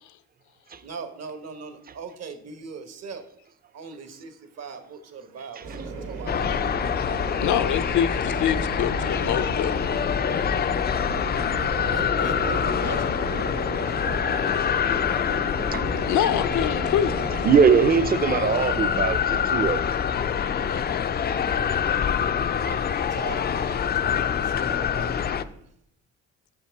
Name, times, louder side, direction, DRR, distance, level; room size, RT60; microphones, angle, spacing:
voice 1, 0.8-3.2 3.7-7.3 11.5-14.9 22.6-25.7, right 5 dB, 60° right, 7 dB, 1.2 m, -41 dB
sound 1, 5.6-17.5, right 3 dB, 75° right, 2.3 m, -35 dB
sound 2, 6.3-25.4, left 8 dB, 35° left, 0.4 m, -25 dB
voice 2, 7.4-9.9 11.3-11.4 16.0-17.2, left 10 dB, 75° left, 13 dB, 0.6 m, -25 dB
voice 3, 17.4-19.8, right 6 dB, 30° right, 12 dB, 0.6 m, -20 dB
5.9 x 5.7 x 4.6 m, 0.71 s
cardioid pair, 90°, 30 cm